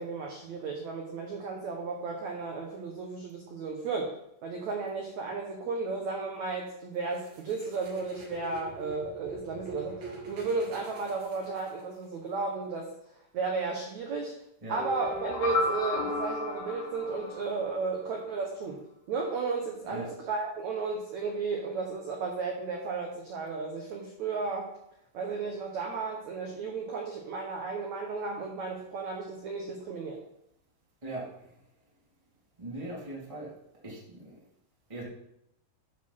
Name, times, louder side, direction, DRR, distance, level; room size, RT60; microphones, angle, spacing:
voice 1, 0.0-4.1 4.4-12.9 13.3-14.3 14.7-18.8 19.1-24.7 25.1-30.2, right 4 dB, 85° right, 1 dB, 1.6 m, -34 dB
sound 1, 7.1-12.0, right 3 dB, 55° right, 2.4 m, -44 dB
sound 2, 14.7-17.8, left 2 dB, 90° left, 4.5 m, -33 dB
voice 2, 31.0-31.5 32.6-33.5 33.8-34.4 34.9-35.0, right 1 dB, 15° right, -6 dB, 1.2 m, -40 dB
12.5 x 4.4 x 5.7 m, 0.77 s
omnidirectional pair, 4.9 m